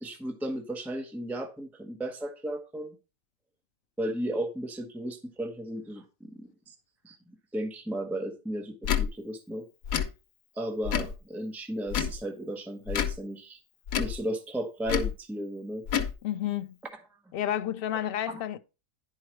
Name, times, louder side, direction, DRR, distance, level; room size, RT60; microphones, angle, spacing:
voice 1, 0.0-3.0 4.0-6.0 6.4-6.7 7.0-7.2 7.5-9.7 10.5-13.6 13.9-15.8 18.3-18.4, right 1 dB, ahead, 0.9 m, -34 dB
Tick / Tick-tock, 8.8-9.1 9.8-10.1 10.8-11.2 11.9-12.2 12.9-13.2 13.9-14.2 14.9-15.1 15.9-16.1, left 8 dB, 85° left, 1.2 m, -28 dB
voice 2, 16.2-16.7 17.3-18.6, left 11 dB, 70° left, 0.5 m, -30 dB
10.5 x 4.7 x 4.4 m
omnidirectional pair, 1.4 m